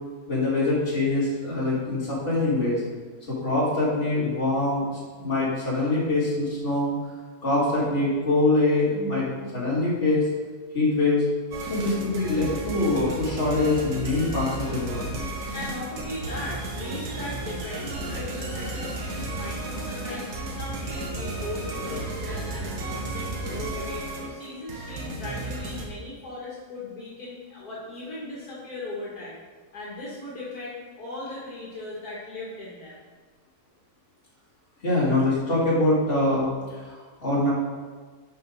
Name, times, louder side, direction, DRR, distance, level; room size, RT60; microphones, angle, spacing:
voice 1, 0.3-2.8 3.3-4.8 5.2-6.9 7.4-10.2 10.7-11.2 11.7-15.1 34.8-36.5 36.9-37.5, left 2 dB, 35° left, -8 dB, 2.8 m, -24 dB
sound 1, 11.5-25.9, right 2 dB, 75° right, 1.6 m, -33 dB
voice 2, 15.5-29.4 29.7-33.0 36.8-36.9, left 2 dB, 70° left, -6 dB, 2.0 m, -38 dB
10.5 x 5.0 x 4.0 m, 1.4 s
omnidirectional pair, 1.7 m